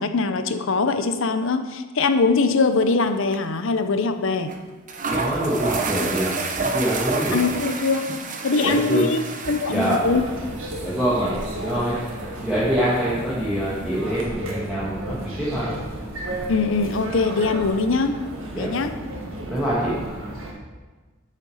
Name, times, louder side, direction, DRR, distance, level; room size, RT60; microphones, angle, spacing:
voice 1, 0.0-4.5 7.3-8.2 8.4-10.2 16.5-18.2 18.6-19.0, left 4 dB, 60° left, 9 dB, 0.7 m, -22 dB
sound 1, 2.8-3.1 3.3-3.4 4.5-4.6 4.9-14.3, right 3 dB, 35° right, 1.0 m, -31 dB
voice 2, 5.1-7.4 8.6-9.1 9.7-10.1 10.8-11.4 11.6-11.9 12.4-15.7 18.6-18.7 19.5-19.9, right 1 dB, ahead, -10 dB, 1.9 m, -25 dB
sound 2, 10.0-20.5, right 1 dB, 65° right, 1.8 m, -33 dB
8.7 x 6.6 x 6.5 m, 1.3 s
head